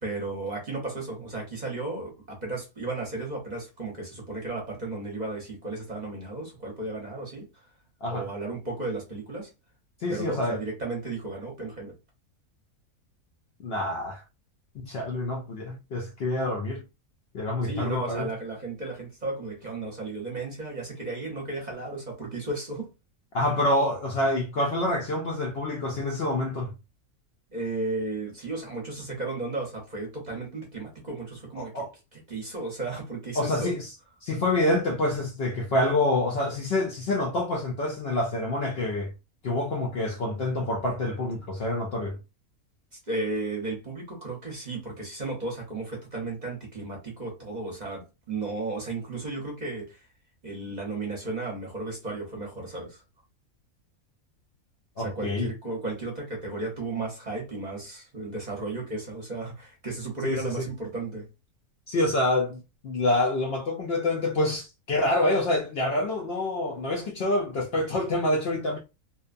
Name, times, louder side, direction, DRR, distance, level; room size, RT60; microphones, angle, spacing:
voice 1, 0.0-7.6 8.1-9.5 10.1-11.9 17.6-22.9 27.5-31.8 32.1-33.8 43.1-50.1 50.4-53.0 55.0-61.3, right 3 dB, 40° right, 0.7 m, -34 dB
voice 2, 10.0-10.6 13.6-14.2 14.7-16.8 17.3-18.3 23.3-26.7 31.6-31.9 33.4-33.9 34.2-39.1 39.4-42.2 55.0-55.5 60.2-60.7 61.9-68.8, left 1 dB, 65° left, 0.6 m, -27 dB
2.7 x 2.1 x 2.4 m
omnidirectional pair, 1.5 m